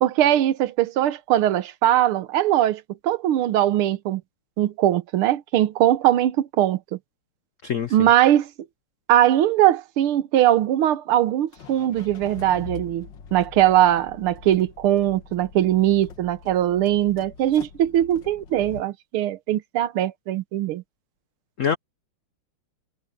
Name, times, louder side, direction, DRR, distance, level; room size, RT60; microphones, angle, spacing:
voice 1, 0.0-4.2 4.6-6.8 7.9-8.5 9.1-20.8, right 12 dB, 80° right, 1.7 m, -21 dB
voice 2, 7.6-8.1 21.6-21.8, left 7 dB, 75° left, 0.7 m, -25 dB
sound 1, 11.5-18.8, left 6 dB, 60° left, 2.0 m, -43 dB
omnidirectional pair, 2.4 m